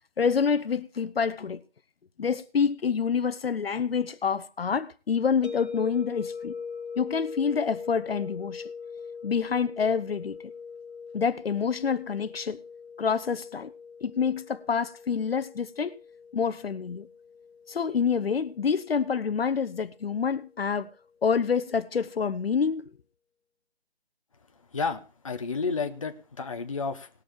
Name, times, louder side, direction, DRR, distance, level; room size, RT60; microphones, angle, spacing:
voice 1, 0.2-1.6 2.2-6.5 7.0-8.7 9.2-10.4 11.1-12.6 13.0-13.7 14.0-15.9 16.3-17.1 17.7-20.9 21.2-22.9, left 6 dB, 65° left, 0.8 m, -27 dB
sound 1, 5.4-20.4, left 5 dB, 85° left, 1.2 m, -42 dB
voice 2, 24.7-27.1, left 4 dB, 30° left, 0.9 m, -31 dB
19.5 x 6.9 x 4.6 m
hypercardioid pair, 180°, 32 cm